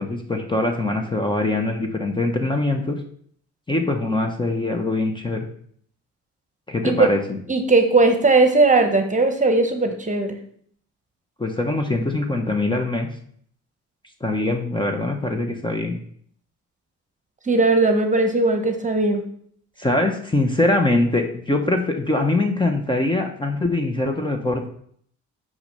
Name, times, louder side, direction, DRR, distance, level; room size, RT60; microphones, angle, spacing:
voice 1, 0.0-3.0 3.7-5.5 6.7-7.4 11.4-13.1 14.2-16.0 19.8-24.7, left 2 dB, 15° left, 4 dB, 1.1 m, -23 dB
voice 2, 7.5-10.4 17.5-19.2, right 3 dB, 25° right, 6 dB, 1.2 m, -18 dB
5.8 x 5.5 x 6.8 m, 0.63 s
cardioid pair, 90°, 30 cm